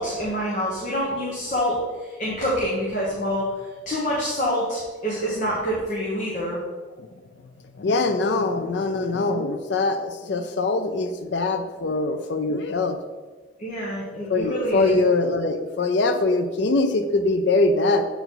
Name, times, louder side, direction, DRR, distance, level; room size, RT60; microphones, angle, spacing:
voice 1, 0.0-3.5 3.8-6.6 13.6-15.0, equal, 45° left, -6 dB, 1.3 m, -26 dB
voice 2, 7.8-13.0 14.3-18.1, left 3 dB, 80° left, 7 dB, 0.5 m, -23 dB
7.7 x 4.6 x 4.0 m, 1.4 s
head